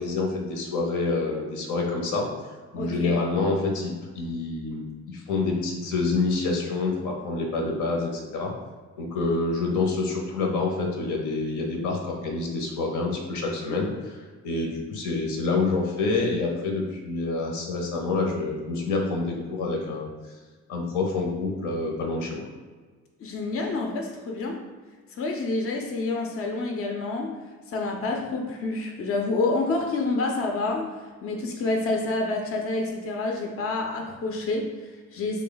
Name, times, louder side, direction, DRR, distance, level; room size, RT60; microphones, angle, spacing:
voice 1, 0.0-2.3 2.7-8.5 9.0-14.2 14.4-20.1 20.7-22.4, left 3 dB, 85° left, 0 dB, 0.8 m, -27 dB
voice 2, 2.7-3.2 23.2-24.6 25.1-27.4 27.7-31.0 31.2-35.4, left 3 dB, 50° left, 2 dB, 0.5 m, -28 dB
3.2 x 2.3 x 3.9 m, 1.4 s
cardioid pair, 90°, 30 cm